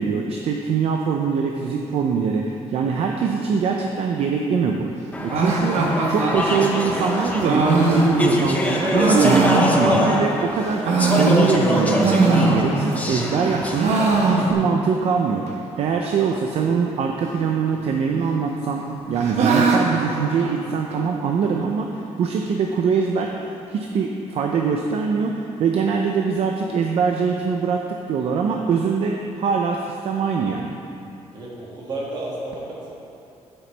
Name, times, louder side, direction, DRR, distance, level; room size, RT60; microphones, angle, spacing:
voice 1, 0.0-4.9 5.2-8.9 9.2-14.0 14.3-23.3 23.7-30.7, right 5 dB, 60° right, 2 dB, 0.6 m, -23 dB
Speech / Chatter, 5.1-14.5, left 1 dB, 15° left, 0.8 m, -24 dB
sound 1, 5.3-10.3 10.7-13.1 13.3-14.9 15.2-15.3 15.5-15.6 16.2-16.6 17.7-18.3 18.6-21.1, right 3 dB, 80° right, 1.0 m, -21 dB
voice 2, 31.3-32.9, right 2 dB, 40° right, -5 dB, 2.1 m, -32 dB
12.0 x 9.0 x 3.4 m, 2.7 s
cardioid pair, 175°, 11 cm